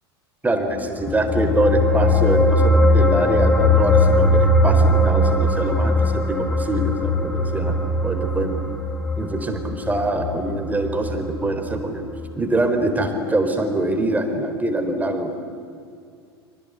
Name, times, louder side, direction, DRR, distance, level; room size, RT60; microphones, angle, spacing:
voice 1, 0.4-8.8 9.2-12.1 12.4-15.4, right 2 dB, 10° right, 6 dB, 3.9 m, -24 dB
sound 1, 0.9-11.6 11.9-12.1, left 1 dB, 10° left, 2.2 m, -19 dB
29.5 x 24.5 x 8.1 m, 2.3 s
figure-of-eight pair, 80°, 13 cm